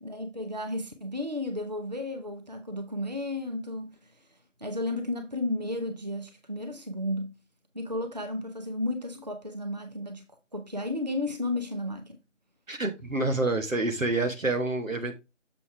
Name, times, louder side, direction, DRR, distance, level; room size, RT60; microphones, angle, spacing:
voice 1, 0.0-4.1 4.6-7.4 7.7-10.2 10.5-12.2, left 1 dB, 35° right, 0.6 m, -33 dB
voice 2, 12.7-15.1, right 2 dB, 90° right, 1.6 m, -27 dB
7.0 x 4.9 x 3.4 m
figure-of-eight pair, 165°, 38 cm